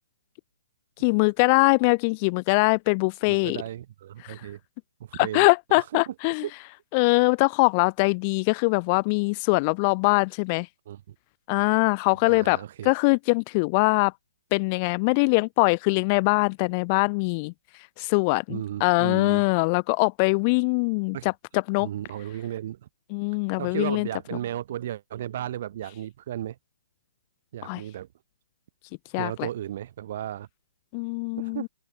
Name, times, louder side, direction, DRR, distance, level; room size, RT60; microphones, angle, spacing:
voice 1, 1.0-3.6 5.1-6.4 6.9-10.7 11.5-14.1 14.5-17.5 18.0-21.9 23.1-24.1 27.6-27.8 29.1-29.5 30.9-31.7, left 31 dB, 30° left, 0.7 m, -22 dB
voice 2, 3.3-4.6 5.0-5.5 5.8-6.1 6.4-6.5 10.9-11.1 12.2-12.9 18.5-19.4 21.1-21.3 21.8-22.8 23.6-26.6 27.5-28.1 29.2-30.5 31.4-31.7, right 12 dB, 45° right, 5.7 m, -34 dB
open air
hypercardioid pair, 155°, 0 cm